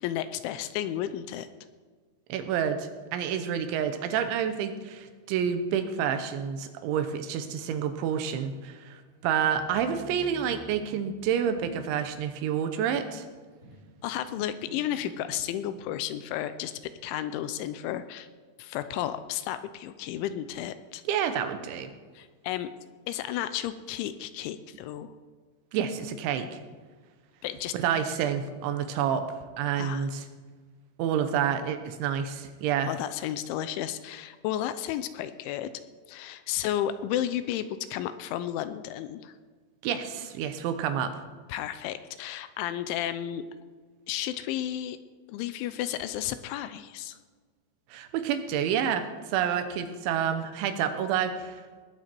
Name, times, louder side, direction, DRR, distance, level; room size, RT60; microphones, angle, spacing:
voice 1, 0.0-1.5 14.0-18.3 18.6-21.0 22.2-22.7 23.1-25.1 27.4-27.8 29.7-30.1 32.9-35.7 36.1-39.3 41.5-43.4 44.1-45.0 45.3-47.2, left 11 dB, 85° left, 12 dB, 2.9 m, -33 dB
voice 2, 2.3-13.2 21.1-21.9 25.7-26.6 27.7-29.2 29.6-30.3 31.0-32.9 39.8-41.1 47.9-51.6, right 8 dB, 80° right, 8 dB, 3.1 m, -29 dB
sound 1, 5.5-6.1 9.5-12.7 13.1-15.8, equal, 25° right, 1.6 m, -51 dB
20.0 x 8.8 x 4.5 m, 1.5 s
omnidirectional pair, 5.6 m